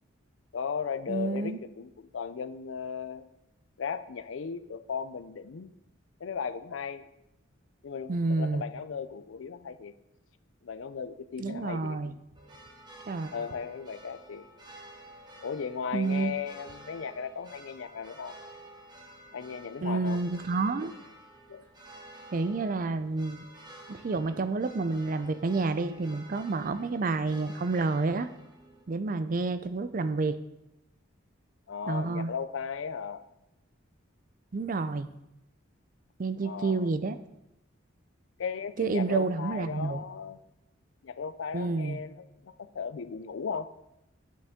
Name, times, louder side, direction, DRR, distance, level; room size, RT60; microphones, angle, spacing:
voice 1, 0.5-3.3 3.8-5.7 6.2-7.1 7.8-9.9 10.6-12.0 13.3-14.5 15.4-18.3 19.3-20.2 21.5-21.7 31.7-33.3 36.4-36.9 38.4-40.4 41.0-43.7, left 6 dB, 75° left, 13 dB, 0.5 m, -36 dB
voice 2, 1.1-1.6 8.1-8.6 11.4-12.2 13.1-13.3 15.9-16.3 19.8-20.9 22.3-23.4 23.9-28.3 28.9-30.4 31.9-32.3 34.5-35.1 36.2-37.2 38.8-40.0 41.5-42.0, right 3 dB, 45° right, 12 dB, 0.4 m, -29 dB
sound 1, 12.3-28.8, right 1 dB, 20° right, 1.1 m, -51 dB
9.2 x 6.8 x 3.6 m, 0.86 s
head